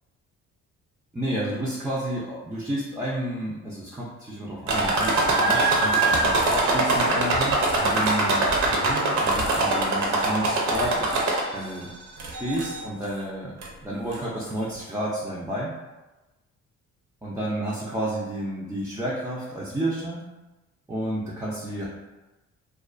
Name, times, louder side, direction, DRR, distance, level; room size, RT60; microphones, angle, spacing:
voice 1, 1.1-11.2 11.5-11.9 12.3-13.6 13.8-15.7 17.2-20.2 20.9-21.9, right 1 dB, 10° right, -6 dB, 0.4 m, -31 dB
sound 1, 4.7-11.7 12.2-12.8 13.6-13.7 14.1-14.2, right 2 dB, 70° right, 0.6 m, -23 dB
2.3 x 2.2 x 2.4 m, 1.1 s
cardioid pair, 90°, 30 cm